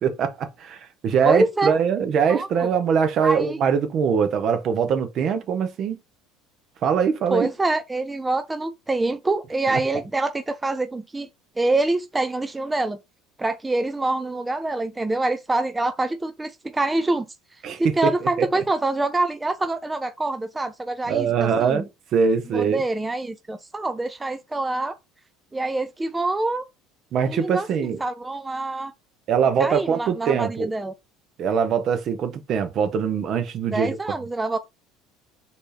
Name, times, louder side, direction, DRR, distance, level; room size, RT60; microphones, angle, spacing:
voice 1, 0.0-6.0 6.8-7.5 9.7-9.8 17.6-18.5 21.1-21.8 22.1-22.8 27.1-28.0 29.3-30.7 31.4-34.1, right 6 dB, 50° right, 0.9 m, -22 dB
voice 2, 1.2-1.7 2.3-2.7 3.2-3.6 7.3-11.3 11.6-13.0 13.4-17.3 17.8-21.8 22.5-25.0 25.5-26.6 27.3-27.7 28.0-28.9 29.6-30.9 33.7-34.7, right 2 dB, 15° right, 0.4 m, -25 dB
4.2 x 2.7 x 3.4 m
supercardioid pair, 95°, 0 cm